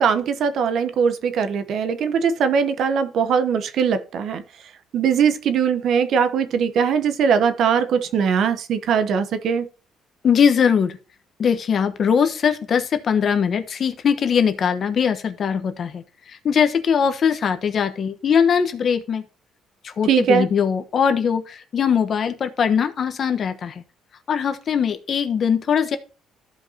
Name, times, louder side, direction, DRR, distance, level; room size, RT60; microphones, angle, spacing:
voice 1, 0.0-4.4 4.9-9.7 20.1-20.5, right 7 dB, 60° right, 1.0 m, -20 dB
voice 2, 10.2-10.9 11.4-16.0 16.4-19.2 19.8-23.7 24.3-26.0, left 7 dB, 45° left, 1.1 m, -21 dB
14.0 x 5.2 x 2.8 m
cardioid pair, 125°, 0 cm